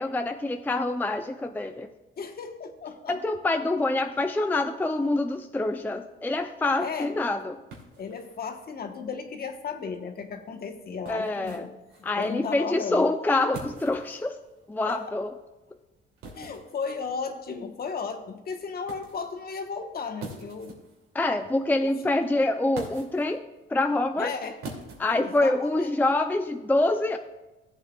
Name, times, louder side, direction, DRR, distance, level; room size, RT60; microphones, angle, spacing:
voice 1, 0.0-1.9 3.1-7.6 11.1-11.7 12.0-14.4 14.7-15.3 21.1-23.4 23.7-24.3 25.0-27.2, left 2 dB, 10° left, 6 dB, 0.5 m, -26 dB
voice 2, 2.2-3.2 6.8-7.1 8.0-11.7 12.2-13.1 14.8-15.0 16.3-20.8 21.8-21.9 24.2-24.6 25.2-25.9, left 5 dB, 45° left, 5 dB, 1.2 m, -35 dB
sound 1, 6.3-25.9, right 3 dB, 85° right, 2.7 m, -48 dB
16.0 x 8.1 x 2.4 m, 1.1 s
cardioid pair, 100°, 21 cm